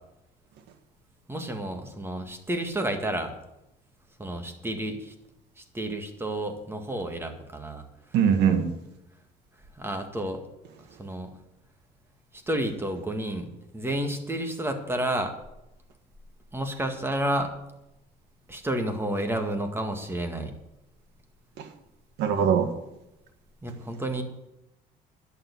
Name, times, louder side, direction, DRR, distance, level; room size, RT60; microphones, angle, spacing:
voice 1, 1.3-3.4 4.2-5.1 5.6-7.8 9.8-10.4 11.0-11.3 12.3-15.3 16.5-17.6 18.5-20.5 23.6-24.2, right 1 dB, 15° right, 5 dB, 2.0 m, -30 dB
voice 2, 8.1-8.7 21.6-21.7 22.2-22.7, right 7 dB, 85° right, 7 dB, 1.7 m, -22 dB
11.0 x 7.0 x 8.4 m, 0.89 s
cardioid pair, 110°, 17 cm